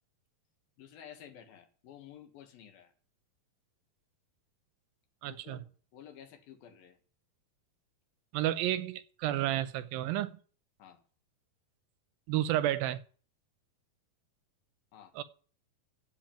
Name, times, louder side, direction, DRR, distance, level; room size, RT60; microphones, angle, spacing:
voice 1, 0.8-2.9 5.3-5.7 5.9-7.0 10.8-11.0 14.9-15.2, left 9 dB, 80° left, 3.3 m, -52 dB
voice 2, 5.2-5.6 8.3-10.4 12.3-13.0 15.2-15.3, right 13 dB, 80° right, 2.5 m, -31 dB
8.8 x 8.1 x 9.0 m
omnidirectional pair, 4.2 m